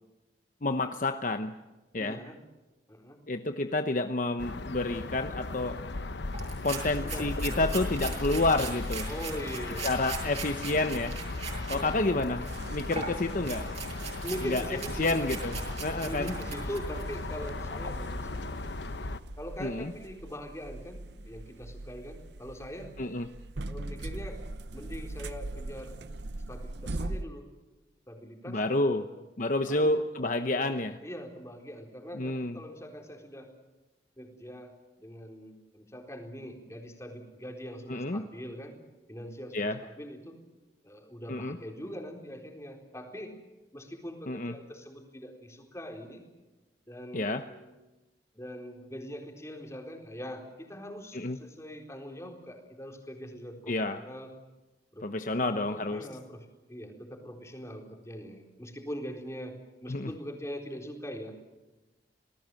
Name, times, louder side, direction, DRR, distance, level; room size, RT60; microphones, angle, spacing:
voice 1, 0.6-1.6 1.9-2.2 3.3-5.8 6.6-9.1 9.8-11.2 11.7-13.8 14.4-16.3 19.6-19.9 23.0-23.3 28.5-29.1 29.4-31.0 32.1-32.6 37.9-38.3 39.5-39.8 41.3-41.6 44.3-44.5 47.1-47.4 51.1-51.4 53.7-54.0 55.0-56.1 59.9-60.1, left 2 dB, 45° left, 7 dB, 0.9 m, -29 dB
voice 2, 2.0-2.4 2.9-3.2 7.0-8.3 9.1-9.8 11.7-12.5 14.2-15.2 16.0-18.6 19.4-23.0 23.7-24.4 24.7-26.0 26.5-27.5 28.1-29.2 29.7-30.0 30.5-33.5 34.2-38.8 39.1-40.4 40.8-43.4 43.7-46.2 46.9-47.7 48.3-54.3 54.9-55.1 55.4-61.3, equal, 15° left, 2 dB, 4.0 m, -42 dB
sound 1, 4.4-19.2, left 2 dB, 80° left, 0.9 m, -37 dB
sound 2, 6.3-11.8 12.2-17.2, right 4 dB, 35° right, 7.8 m, -40 dB
sound 3, 12.4-27.2, right 2 dB, 80° right, 0.9 m, -41 dB
28.5 x 19.0 x 7.7 m, 1.1 s
head